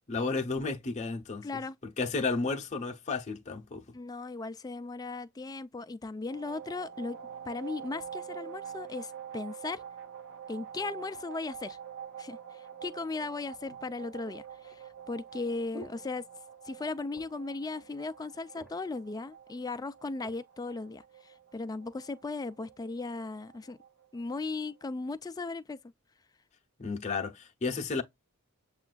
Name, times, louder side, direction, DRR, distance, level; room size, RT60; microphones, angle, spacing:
voice 1, 0.1-1.5 2.0-3.8 26.8-28.0, left 4 dB, 35° left, 0.7 m, -32 dB
voice 2, 1.4-1.8 3.9-7.2 7.5-9.8 10.5-11.8 12.2-16.2 16.6-23.8 24.1-25.8, left 3 dB, 20° left, 0.3 m, -37 dB
sound 1, 6.3-24.9, right 8 dB, 60° right, 0.8 m, -47 dB
sound 2, 12.7-12.8 13.7-16.8 17.1-17.5 17.9-18.0 18.3-19.0 19.7-20.4 21.1-21.2, left 1 dB, ahead, 0.8 m, -52 dB
7.0 x 2.4 x 2.2 m
head